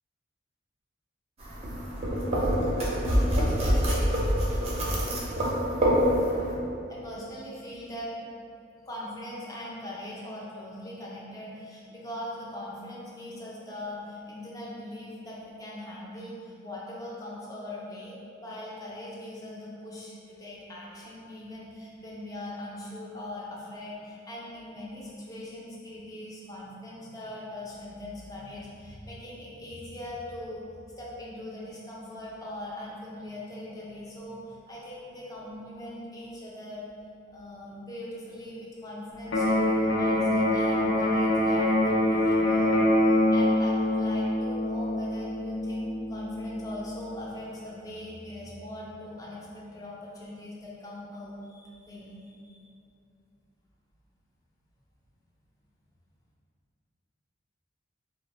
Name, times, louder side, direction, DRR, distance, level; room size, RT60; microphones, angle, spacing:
sound 1, 1.4-6.5, equal, 35° right, 0.5 m, -25 dB
voice 1, 6.9-8.1 8.9-30.6 30.9-36.8 37.3-42.7 43.0-52.6, left 1 dB, 20° left, -5 dB, 0.4 m, -41 dB
Electric guitar, 39.3-47.3, left 1 dB, 75° left, 0.4 m, -25 dB
2.4 x 2.0 x 3.2 m, 2.5 s
head